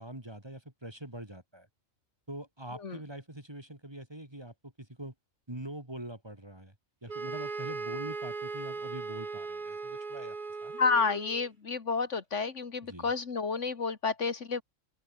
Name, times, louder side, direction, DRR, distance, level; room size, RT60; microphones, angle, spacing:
voice 1, 0.0-1.7 2.3-5.1 5.5-6.7 7.0-10.4 10.6-10.7 12.8-13.1, right 1 dB, 20° right, 2.8 m, -44 dB
sound 1, 7.1-11.5, right 4 dB, 40° right, 1.7 m, -38 dB
voice 2, 10.8-14.6, left 4 dB, 60° left, 2.0 m, -30 dB
open air
omnidirectional pair, 1.4 m